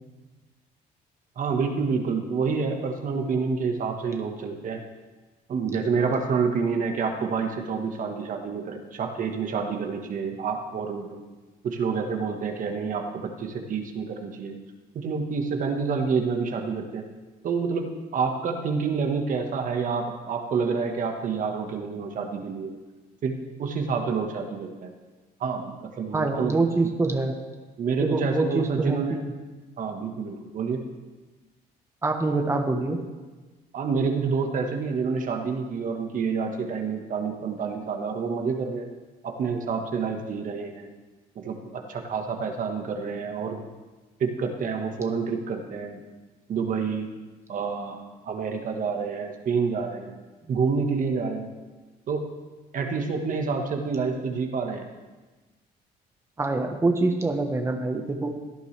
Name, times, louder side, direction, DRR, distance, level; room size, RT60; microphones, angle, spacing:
voice 1, 1.3-4.8 5.5-11.2 11.6-14.5 14.9-17.0 17.4-22.7 23.2-24.9 25.4-26.6 27.8-29.2 29.8-30.8 33.7-38.9 39.2-40.9 41.3-43.6 44.2-46.0 46.5-47.1 47.5-50.2 50.5-51.5 52.1-52.3 52.7-54.9, right 5 dB, 50° right, 4 dB, 1.5 m, -28 dB
voice 2, 26.1-27.4 28.0-29.3 32.0-33.0 56.4-58.3, right 3 dB, 15° right, 4 dB, 1.1 m, -25 dB
17.0 x 10.5 x 3.4 m, 1.3 s
cardioid pair, 110°, 17 cm